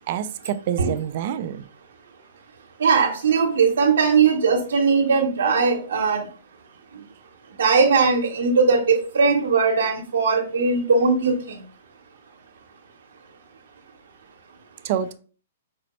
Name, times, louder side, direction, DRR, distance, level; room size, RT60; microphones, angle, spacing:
voice 1, 0.1-1.6 14.8-15.1, right 10 dB, 50° right, 11 dB, 0.3 m, -27 dB
voice 2, 2.8-6.2 7.6-11.3, right 5 dB, 75° right, 1 dB, 0.8 m, -19 dB
5.0 x 2.0 x 3.0 m, 0.39 s
hypercardioid pair, 140°, 0 cm